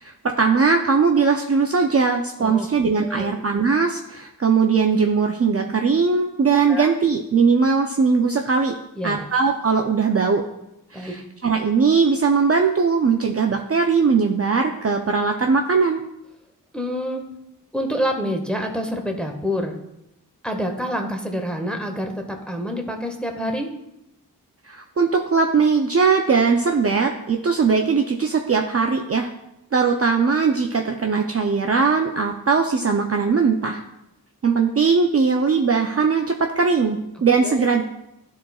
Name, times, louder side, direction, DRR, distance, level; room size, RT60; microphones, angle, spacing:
voice 1, 0.0-8.7 9.0-10.4 10.9-16.0 24.7-29.3 29.7-33.8 34.4-37.8, right 5 dB, 40° right, 3 dB, 0.5 m, -20 dB
voice 2, 3.0-3.3 6.7-6.9 9.0-9.2 10.9-11.2 16.7-17.2 17.7-19.8 20.4-23.7 37.4-37.7, equal, 5° left, 3 dB, 0.9 m, -27 dB
12.5 x 4.2 x 2.3 m, 0.87 s
wide cardioid pair, 75°, 38 cm